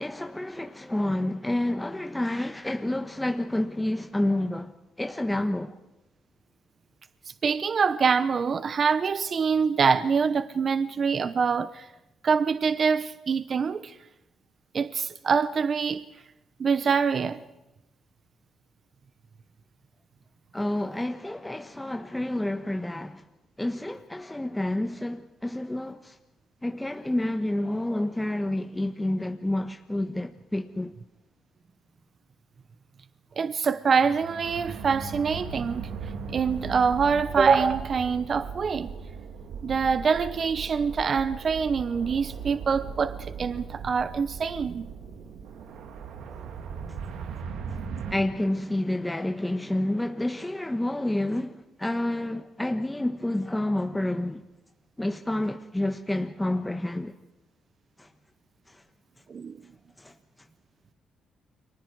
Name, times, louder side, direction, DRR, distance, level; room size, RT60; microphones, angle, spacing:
voice 1, 0.0-4.7 5.0-5.7 20.5-23.2 23.6-26.2 26.6-30.9 48.1-54.4 55.0-57.1 58.0-58.1 58.7-58.8 60.0-60.1, left 1 dB, 10° left, 1.2 m, -29 dB
voice 2, 7.4-11.9 12.2-13.9 14.7-16.0 16.6-17.4 33.4-35.9 36.3-38.9 39.6-44.9 59.3-59.6, right 5 dB, 45° right, 0.9 m, -25 dB
sound 1, 33.9-48.2, right 6 dB, 80° right, 2.2 m, -38 dB
30.0 x 24.0 x 4.8 m
cardioid pair, 90°, 0 cm